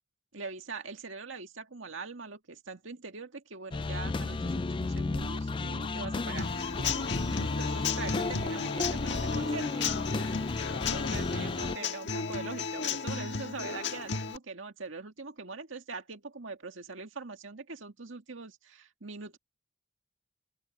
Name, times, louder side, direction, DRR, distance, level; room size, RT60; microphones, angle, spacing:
voice 1, 0.3-6.8 7.3-9.9 10.7-19.4, right 4 dB, 75° right, 2.0 m, -42 dB
sound 1, 3.7-11.8, left 3 dB, 25° left, 0.3 m, -33 dB
Human voice / Acoustic guitar / Drum, 6.4-14.4, left 5 dB, 60° left, 1.7 m, -34 dB
open air
head